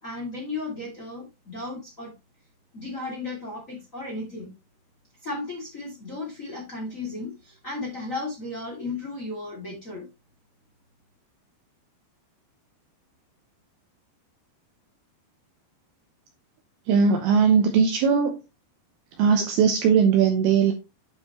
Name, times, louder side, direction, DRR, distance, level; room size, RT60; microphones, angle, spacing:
voice 1, 0.0-2.1 2.7-4.5 5.2-10.1, left 2 dB, 25° left, 1.9 m, -35 dB
voice 2, 16.9-18.4 19.2-20.7, right 6 dB, 75° right, 2.4 m, -19 dB
9.2 x 5.6 x 3.0 m
omnidirectional pair, 5.3 m